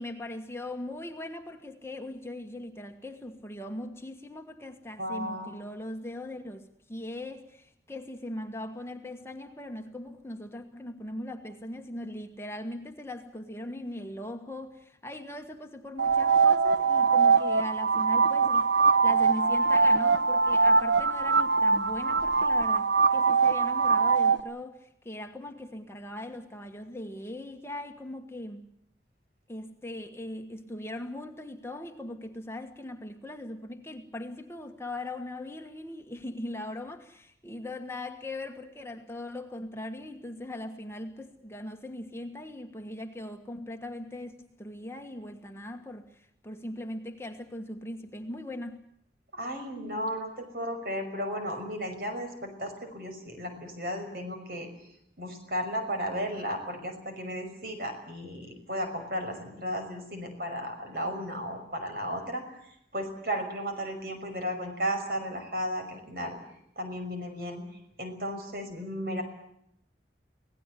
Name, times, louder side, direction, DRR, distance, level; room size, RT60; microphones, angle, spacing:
voice 1, 0.0-18.8 19.0-28.6 29.5-48.9, left 1 dB, 15° left, 1.4 m, -40 dB
voice 2, 5.0-5.5 49.3-54.7 55.2-62.6 62.9-66.4 66.8-67.6 68.0-69.2, equal, 55° right, 5.8 m, -34 dB
sound 1, 16.0-24.4, right 4 dB, 85° right, 1.3 m, -23 dB
25.5 x 18.0 x 8.3 m
head